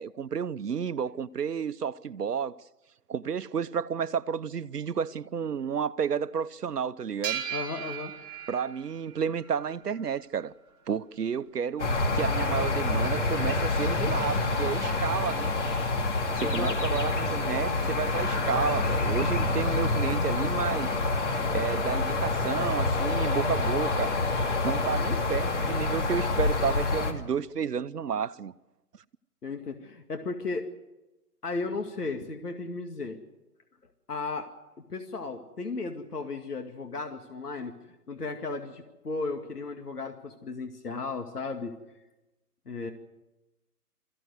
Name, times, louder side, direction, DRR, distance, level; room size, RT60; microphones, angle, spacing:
voice 1, 0.0-2.6 3.1-7.4 8.5-10.5 10.9-15.5 16.4-21.0 21.5-24.1 24.6-28.5, right 7 dB, 80° right, 0.9 m, -31 dB
sound 1, 7.2-10.2, right 9 dB, 15° right, 1.3 m, -38 dB
voice 2, 7.5-8.1 16.4-17.0 29.4-30.7 31.4-33.2 34.1-34.5 34.9-37.7 38.1-41.8 42.7-42.9, left 3 dB, 75° left, 2.3 m, -35 dB
sound 2, 11.8-27.1, left 3 dB, 50° left, 2.8 m, -27 dB
24.0 x 15.0 x 8.0 m
figure-of-eight pair, 150°, 47 cm